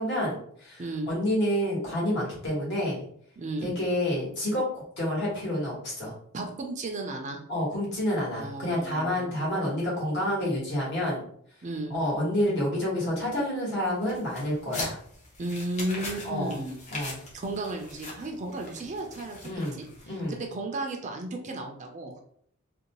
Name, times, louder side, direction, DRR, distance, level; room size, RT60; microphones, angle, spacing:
voice 1, 0.0-3.0 3.6-6.1 7.5-11.2 11.9-15.0 16.2-16.6 16.9-17.2 19.4-20.4, left 1 dB, 55° left, -5 dB, 1.3 m, -29 dB
voice 2, 3.4-3.7 6.3-7.4 8.3-9.3 11.6-11.9 15.4-16.8 17.3-19.4 19.8-19.9 20.3-22.1, right 2 dB, 35° right, 3 dB, 0.4 m, -34 dB
sound 1, 14.0-20.3, left 2 dB, 35° left, 0.8 m, -41 dB
2.6 x 2.2 x 2.9 m, 0.63 s
head